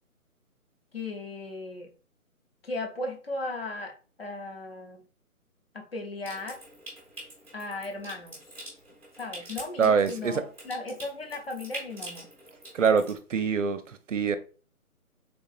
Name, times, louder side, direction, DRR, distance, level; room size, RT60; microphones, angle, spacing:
voice 1, 0.9-1.9 2.6-3.9 4.2-5.0 5.7-6.6 7.5-8.4 9.2-12.3, left 2 dB, 40° left, 0.7 m, -36 dB
Water tap faucet / Sink (filling or washing) / Trickle dribble, 6.2-13.2, right 1 dB, 10° left, 0.8 m, -45 dB
voice 2, 9.8-10.4 12.7-14.4, right 6 dB, 60° right, 0.5 m, -24 dB
3.7 x 2.7 x 2.4 m
figure-of-eight pair, 160°, 44 cm